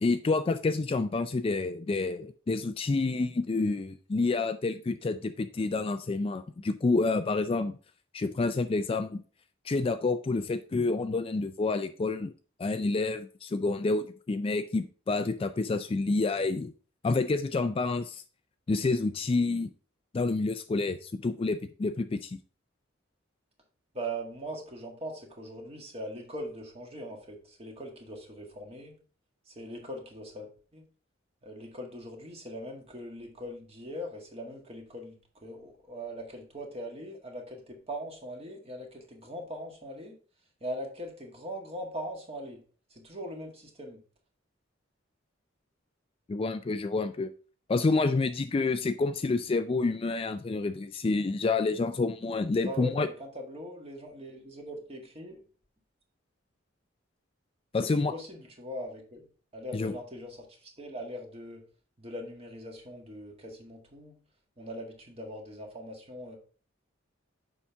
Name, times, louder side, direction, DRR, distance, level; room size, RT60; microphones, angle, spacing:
voice 1, 0.0-7.8 8.1-9.2 9.6-12.3 12.6-16.7 17.0-18.2 18.7-19.7 20.1-22.4 46.3-47.3 47.7-53.1 57.7-58.2 59.7-59.9, left 3 dB, 30° left, 10 dB, 0.3 m, -28 dB
voice 2, 23.9-28.9 29.5-30.8 31.4-40.1 40.6-42.6 42.9-44.0 52.6-55.4 57.8-59.3 59.5-61.6 62.0-64.2 64.6-66.4, equal, 30° right, 1 dB, 1.8 m, -41 dB
7.1 x 5.7 x 3.5 m, 0.39 s
head